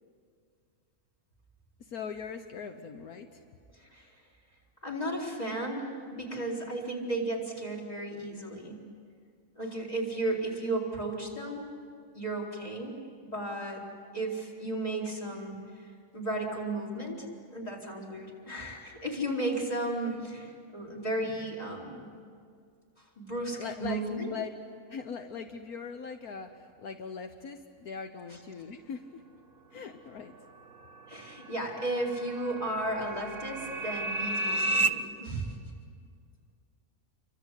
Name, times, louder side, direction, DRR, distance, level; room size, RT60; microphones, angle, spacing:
voice 1, 1.8-3.4 23.6-24.0 24.3-24.5 24.9-29.2 29.7-30.3, left 6 dB, 75° left, 6 dB, 1.6 m, -40 dB
voice 2, 3.7-4.2 4.8-8.8 9.6-11.7 12.1-13.0 13.2-13.8 14.1-15.9 16.1-22.1 23.2-24.3 31.1-35.6, right 1 dB, 25° left, -1 dB, 4.6 m, -34 dB
sound 1, 30.6-34.9, right 2 dB, 60° right, 1.2 m, -32 dB
29.0 x 24.5 x 8.3 m, 2.2 s
omnidirectional pair, 1.6 m